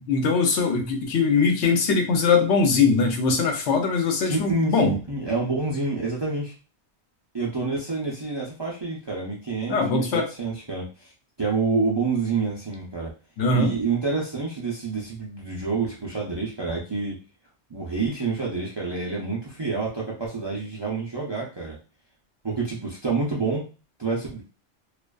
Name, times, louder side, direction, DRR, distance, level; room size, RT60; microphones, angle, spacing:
voice 1, 0.1-5.0 9.7-10.3 13.4-13.7, left 4 dB, 80° left, 4 dB, 0.9 m, -21 dB
voice 2, 4.2-6.5 7.3-11.1 11.4-13.1 13.5-17.2 17.7-21.8 22.4-23.7 24.0-24.4, right 4 dB, 35° right, -4 dB, 0.4 m, -28 dB
2.4 x 2.4 x 2.2 m, 0.32 s
omnidirectional pair, 1.2 m